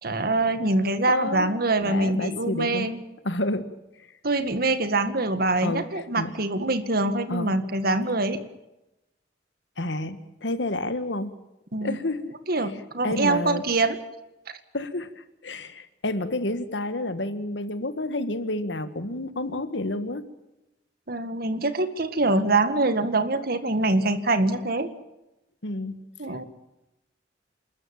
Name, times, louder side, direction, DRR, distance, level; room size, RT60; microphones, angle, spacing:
voice 1, 0.0-3.0 4.2-8.4 11.7-12.0 12.5-14.0 21.1-24.9 26.2-26.4, right 2 dB, 55° right, 10 dB, 1.9 m, -24 dB
voice 2, 1.1-1.5 1.8-2.9 3.2-3.7 4.0-4.1 5.6-5.9 6.2-6.4 7.3-7.5 9.8-11.3 11.8-12.3 12.6-12.7 13.0-13.6 14.7-20.2 25.6-26.0, left 2 dB, 90° left, 11 dB, 1.7 m, -29 dB
28.0 x 13.5 x 9.0 m, 0.96 s
head